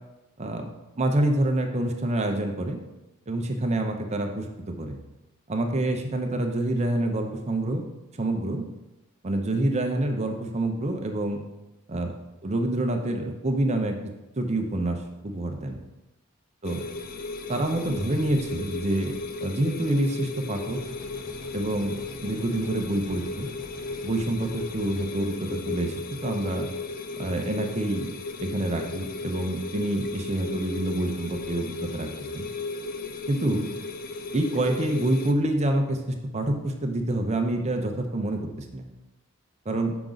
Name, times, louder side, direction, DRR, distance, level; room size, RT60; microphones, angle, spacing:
voice 1, 1.0-2.8 3.3-5.0 5.5-7.8 8.2-8.6 9.2-11.4 11.9-12.1 12.4-14.0 14.4-15.8 16.6-16.8 17.5-19.1 19.4-20.8 21.5-22.0 22.2-23.5 24.0-25.9 26.2-26.7 27.2-28.1 28.4-32.1 32.3-32.5 33.3-33.7 34.3-38.9 39.7-39.9, right 1 dB, 30° right, 4 dB, 0.6 m, -27 dB
sound 1, 16.6-35.3, left 3 dB, 40° left, 0.4 m, -35 dB
sound 2, 20.7-25.0, equal, ahead, 0.8 m, -45 dB
5.9 x 5.0 x 3.9 m, 1.0 s
head